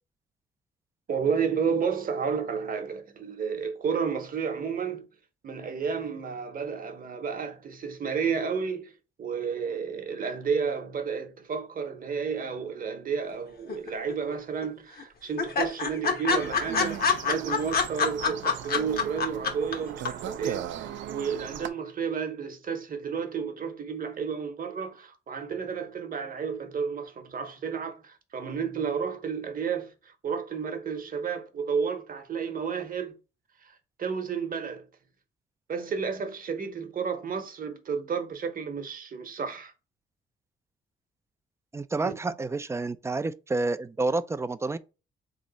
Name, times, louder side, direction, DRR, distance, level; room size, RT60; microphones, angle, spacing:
voice 1, 1.1-5.1 5.4-8.9 9.2-33.2 33.6-34.9 35.7-39.7 42.0-42.1, right 6 dB, 45° right, 0.9 m, -31 dB
sound 1, 13.7-14.3 14.6-14.7 15.0-15.1 15.4-19.7 20.0-20.1, left 5 dB, 50° left, 0.9 m, -26 dB
sound 2, 16.4-21.7, right 10 dB, 70° right, 0.5 m, -38 dB
voice 2, 41.7-44.8, right 3 dB, 15° right, 0.3 m, -29 dB
3.6 x 3.1 x 3.9 m
cardioid pair, 90°, 20 cm